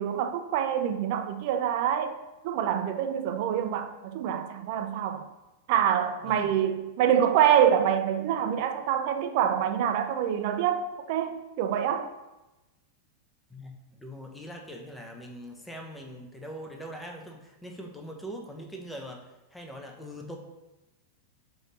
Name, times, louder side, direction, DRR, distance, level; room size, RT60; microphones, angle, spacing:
voice 1, 0.0-2.2 2.4-5.2 5.7-10.8 11.1-12.1, right 9 dB, 55° right, 8 dB, 0.4 m, -26 dB
voice 2, 13.5-19.3 19.5-20.4, equal, 5° left, 2 dB, 0.6 m, -42 dB
3.5 x 2.6 x 4.1 m, 1.0 s
supercardioid pair, 135°, 0 cm